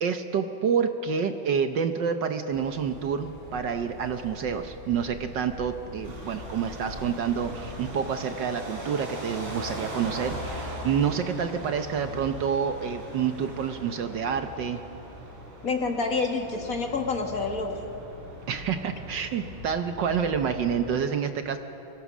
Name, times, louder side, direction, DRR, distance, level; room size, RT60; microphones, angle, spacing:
voice 1, 0.0-14.8 18.5-21.6, right 7 dB, 65° right, 7 dB, 1.4 m, -28 dB
sound 1, 2.5-7.9, left 2 dB, 5° left, 3.9 m, -45 dB
sound 2, 6.0-20.9, right 1 dB, 90° right, 4.7 m, -40 dB
voice 2, 15.6-17.7, left 4 dB, 45° left, 2 dB, 2.1 m, -28 dB
26.0 x 21.5 x 6.2 m, 2.9 s
omnidirectional pair, 2.3 m